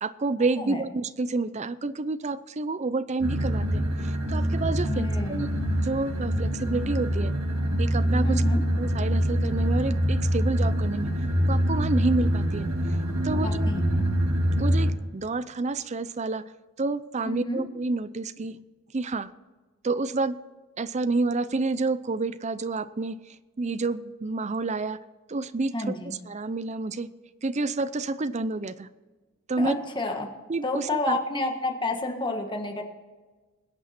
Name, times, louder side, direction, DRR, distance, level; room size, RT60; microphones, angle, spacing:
voice 1, 0.0-7.3 7.8-8.4 8.7-11.1 11.5-12.7 13.2-13.7 14.3-16.4 16.8-18.6 18.9-19.3 19.8-20.4 20.8-23.2 23.6-25.0 25.3-27.1 27.4-28.9 29.5-29.7 30.5-31.2, right 3 dB, 35° right, 15 dB, 0.6 m, -29 dB
sound 1, 3.2-14.9, equal, 85° right, 2.1 m, -25 dB
voice 2, 4.8-5.5 8.2-8.6 13.3-14.0 17.2-17.6 25.7-26.1 29.6-30.3 30.6-32.8, left 2 dB, 25° left, 4 dB, 1.6 m, -30 dB
21.0 x 8.5 x 4.3 m, 1.3 s
head